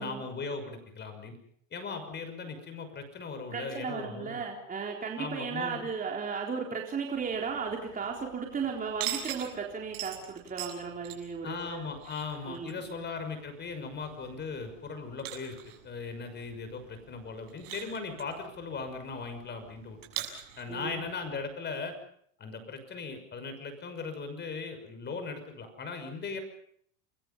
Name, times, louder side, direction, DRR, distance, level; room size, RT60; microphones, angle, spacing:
voice 1, 0.0-1.4 1.7-4.4 5.2-5.9 11.4-15.6 15.8-20.0 20.6-22.0 22.4-26.4, left 4 dB, 25° left, 8 dB, 6.2 m, -38 dB
voice 2, 3.5-11.9 12.5-13.0 20.7-21.0, right 5 dB, 20° right, 0 dB, 3.8 m, -35 dB
sound 1, 7.1-21.5, right 12 dB, 70° right, 6.8 m, -44 dB
29.5 x 21.5 x 5.7 m, 0.65 s
supercardioid pair, 125°, 38 cm